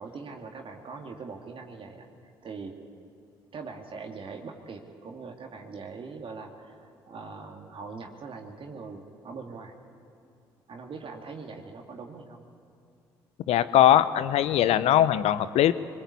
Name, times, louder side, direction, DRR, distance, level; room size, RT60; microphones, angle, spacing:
voice 1, 0.0-2.1 2.4-2.8 3.5-9.7 10.7-12.5, right 4 dB, 50° right, 2 dB, 2.5 m, -41 dB
voice 2, 13.5-15.7, left 12 dB, 65° left, 14 dB, 0.8 m, -21 dB
22.5 x 21.5 x 8.5 m, 2.5 s
hypercardioid pair, 45°, 12 cm